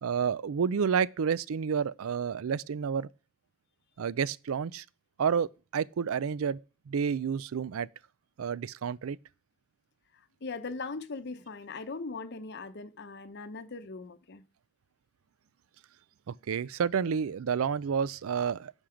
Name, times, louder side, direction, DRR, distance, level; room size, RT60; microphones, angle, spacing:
voice 1, 0.0-3.1 4.0-4.8 5.2-6.6 6.9-7.9 8.4-9.2 16.3-18.7, right 6 dB, 80° right, 0.4 m, -30 dB
voice 2, 10.1-14.4, left 3 dB, 50° left, 0.8 m, -40 dB
11.5 x 6.5 x 5.0 m
head